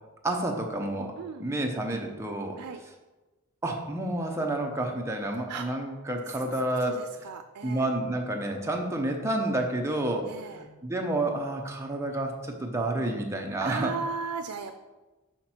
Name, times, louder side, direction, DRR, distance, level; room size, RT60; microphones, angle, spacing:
voice 1, 0.2-2.6 3.6-7.2 7.6-13.9, right 1 dB, 10° right, 2 dB, 0.7 m, -30 dB
voice 2, 6.9-7.9 10.3-10.6 13.6-14.8, right 5 dB, 90° right, 7 dB, 0.4 m, -36 dB
5.8 x 5.7 x 4.4 m, 1.2 s
head